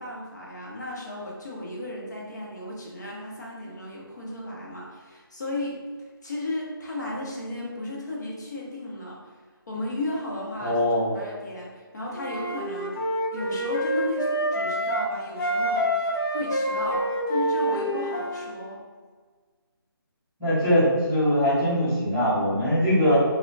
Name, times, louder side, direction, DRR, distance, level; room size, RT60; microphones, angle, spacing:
voice 1, 0.0-5.8 6.2-9.3 9.7-10.8 11.1-18.8, left 1 dB, 50° left, -4 dB, 0.7 m, -34 dB
voice 2, 10.6-11.1 20.4-23.2, equal, 10° right, -16 dB, 0.6 m, -22 dB
Wind instrument woodwind instrument, 12.1-15.1 15.4-18.5, equal, 80° left, 0.7 m, -27 dB
2.3 x 2.1 x 3.8 m, 1.5 s
hypercardioid pair, 175°, 12 cm